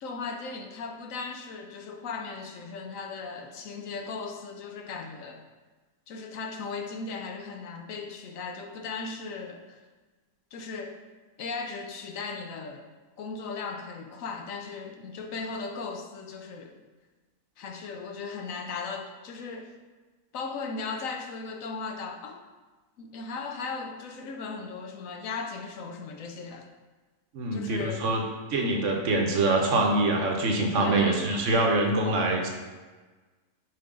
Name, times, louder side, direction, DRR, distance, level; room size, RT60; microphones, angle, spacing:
voice 1, 0.0-5.4 6.1-9.8 10.5-11.0 11.4-12.9 13.2-16.8 17.6-19.7 20.3-22.4 23.0-26.7 27.5-28.0 30.8-31.3, left 4 dB, 70° left, 4 dB, 1.0 m, -37 dB
voice 2, 27.3-28.2 28.5-32.5, right 2 dB, 60° right, 1 dB, 1.1 m, -24 dB
6.0 x 4.3 x 3.6 m, 1.3 s
omnidirectional pair, 1.5 m